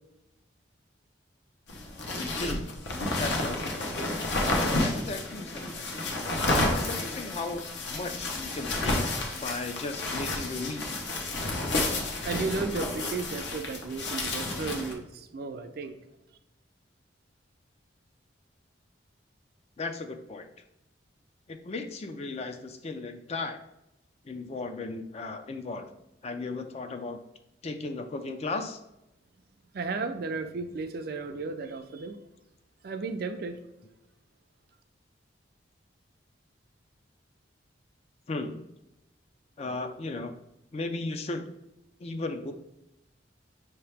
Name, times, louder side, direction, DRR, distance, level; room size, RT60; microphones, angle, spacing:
sound 1, 1.7-14.9, left 2 dB, 70° left, 0.8 m, -31 dB
voice 1, 2.4-2.7 3.2-3.8 4.8-5.9 6.7-9.1 9.4-11.0 19.8-20.5 21.5-23.6 24.2-25.9 26.2-27.2 27.6-28.8 38.3-38.6 39.6-40.3 40.7-41.5 42.0-42.5, left 3 dB, 35° left, 7 dB, 0.4 m, -36 dB
voice 2, 12.2-16.0 29.7-32.2 32.8-33.6, right 4 dB, 55° right, 8 dB, 0.4 m, -34 dB
5.5 x 2.9 x 3.3 m, 0.88 s
head